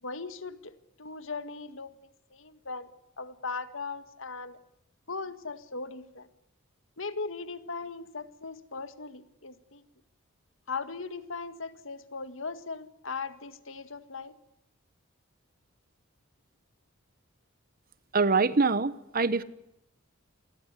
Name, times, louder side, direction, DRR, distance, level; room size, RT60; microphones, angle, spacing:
voice 1, 0.0-1.9 2.3-2.9 3.2-4.6 5.1-6.3 7.0-9.8 10.7-14.4, left 4 dB, 65° left, 2.0 m, -38 dB
voice 2, 18.1-19.4, right 4 dB, 45° right, 1.1 m, -24 dB
28.0 x 20.5 x 9.8 m
head